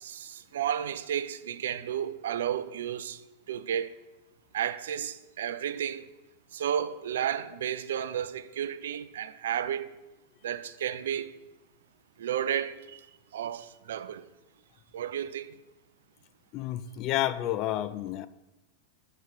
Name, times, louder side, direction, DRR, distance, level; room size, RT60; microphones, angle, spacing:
voice 1, 0.0-3.2 3.5-3.9 4.5-6.0 6.5-9.9 10.4-11.3 12.2-13.1 13.3-14.2 14.9-15.5, right 9 dB, 60° right, 0.3 m, -32 dB
voice 2, 16.5-18.3, left 13 dB, 40° left, 0.3 m, -30 dB
7.5 x 5.5 x 4.2 m
figure-of-eight pair, 90°, 0 cm